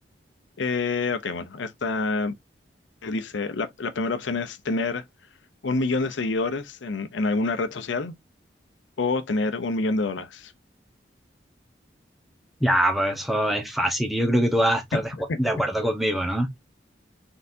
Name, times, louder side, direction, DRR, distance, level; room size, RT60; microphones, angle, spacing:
voice 1, 0.6-2.3 3.0-5.0 5.6-8.1 9.0-10.5 14.9-15.0 15.3-15.4, left 3 dB, 90° left, 0.6 m, -27 dB
voice 2, 12.6-16.6, equal, ahead, 0.9 m, -24 dB
4.3 x 3.8 x 2.6 m
head